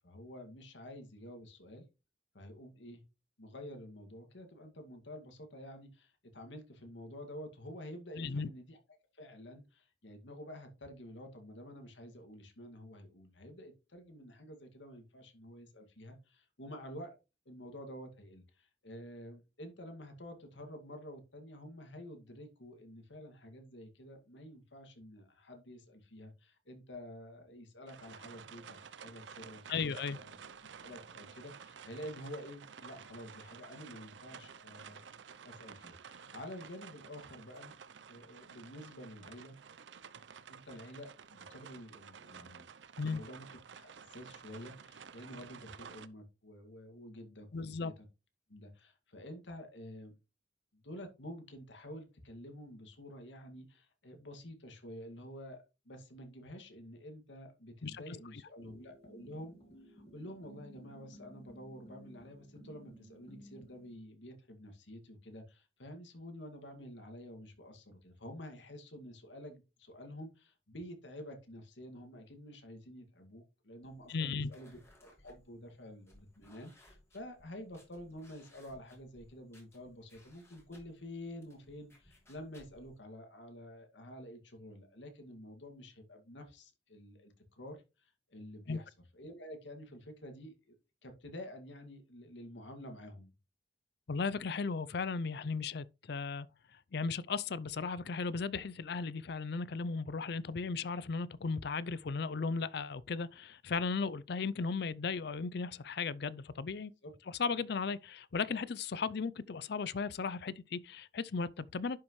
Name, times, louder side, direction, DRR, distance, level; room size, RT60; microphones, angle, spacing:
voice 1, 0.0-1.8 2.3-3.0 3.4-8.8 9.1-17.1 17.5-30.4 30.8-35.1 35.4-37.7 38.1-39.6 40.5-42.7 43.0-48.1 48.5-50.1 50.7-59.6 59.9-90.8 91.0-93.3 107.0-107.1, equal, 80° left, 2.1 m, -49 dB
voice 2, 8.2-8.5 29.7-30.2 43.0-43.2 47.5-47.9 57.8-58.0 74.1-74.5 88.7-88.8 94.1-96.5 96.9-106.9 107.4-112.0, left 4 dB, 60° left, 0.5 m, -36 dB
sound 1, 27.9-46.1, right 6 dB, 75° right, 0.6 m, -52 dB
sound 2, 58.6-64.0, equal, 35° left, 1.9 m, -56 dB
sound 3, 73.8-83.0, left 1 dB, 15° left, 3.0 m, -64 dB
10.5 x 6.0 x 3.1 m
head